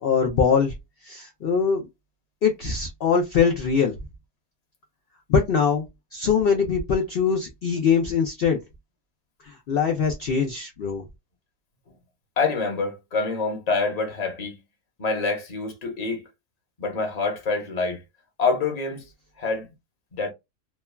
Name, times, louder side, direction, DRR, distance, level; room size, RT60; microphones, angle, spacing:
voice 1, 0.0-0.7 1.0-1.9 2.4-3.9 5.3-5.9 6.1-8.6 9.4-11.0, left 6 dB, 90° left, 0.5 m, -22 dB
voice 2, 12.4-14.6 15.0-16.3 16.8-18.0 18.4-19.0 19.4-19.7 20.1-20.3, left 4 dB, 30° left, 0.8 m, -26 dB
3.1 x 2.2 x 2.2 m
omnidirectional pair, 1.6 m